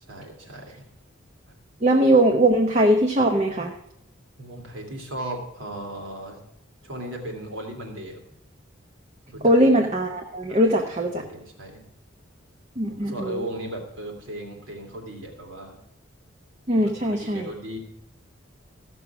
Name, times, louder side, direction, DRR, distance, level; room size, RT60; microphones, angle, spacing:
voice 1, 0.1-0.8 1.5-1.6 4.4-6.4 6.8-8.2 9.3-9.5 10.5-10.9 11.1-11.9 13.0-15.8 16.8-17.8, right 1 dB, 80° right, 1 dB, 2.8 m, -36 dB
voice 2, 1.8-3.7 9.4-11.2 12.8-13.4 16.7-17.5, right 1 dB, 35° right, 2 dB, 0.8 m, -20 dB
15.0 x 6.2 x 5.9 m, 0.82 s
head